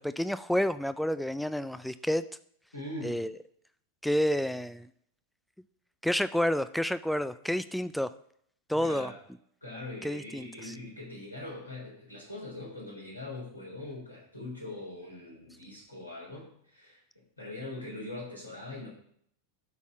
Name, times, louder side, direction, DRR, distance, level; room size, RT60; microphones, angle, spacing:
voice 1, 0.0-2.2 3.0-3.3 4.0-4.9 6.0-8.1 8.7-9.1 10.0-10.7, equal, ahead, 14 dB, 0.3 m, -29 dB
voice 2, 2.7-3.2 8.7-9.2 9.6-17.0 17.4-18.9, left 2 dB, 85° left, -3 dB, 3.4 m, -42 dB
11.5 x 4.2 x 4.7 m, 0.67 s
figure-of-eight pair, 90°, 0 cm